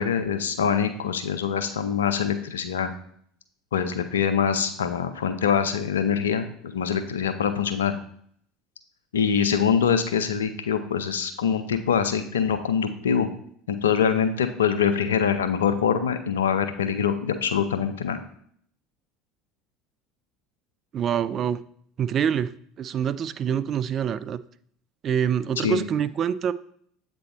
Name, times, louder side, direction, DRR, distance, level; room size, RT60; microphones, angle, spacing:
voice 1, 0.0-2.9 3.7-7.9 9.1-13.3 13.7-18.2 25.6-25.8, left 7 dB, 80° left, 9 dB, 0.5 m, -24 dB
voice 2, 20.9-21.6 22.0-22.5 22.8-24.4 25.0-26.5, right 8 dB, 45° right, 15 dB, 0.3 m, -25 dB
7.8 x 3.5 x 4.0 m, 0.63 s
hypercardioid pair, 70°, 0 cm